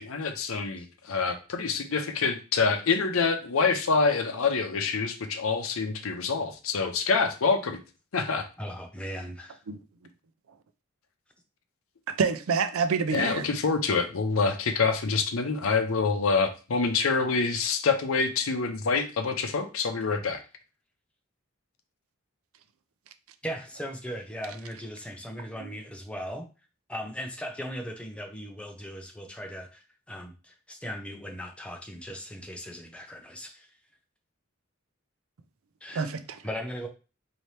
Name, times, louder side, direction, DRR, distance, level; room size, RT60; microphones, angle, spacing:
voice 1, 0.0-7.8 8.1-8.5 13.1-20.4, left 4 dB, 80° left, 0.6 m, -26 dB
voice 2, 8.6-9.6 23.4-26.5 26.9-33.7 35.8-36.1 36.4-36.9, equal, 5° left, 0.6 m, -38 dB
voice 3, 12.1-13.5 25.6-25.7 35.9-36.4, right 5 dB, 85° right, 0.5 m, -27 dB
4.3 x 2.8 x 3.2 m
head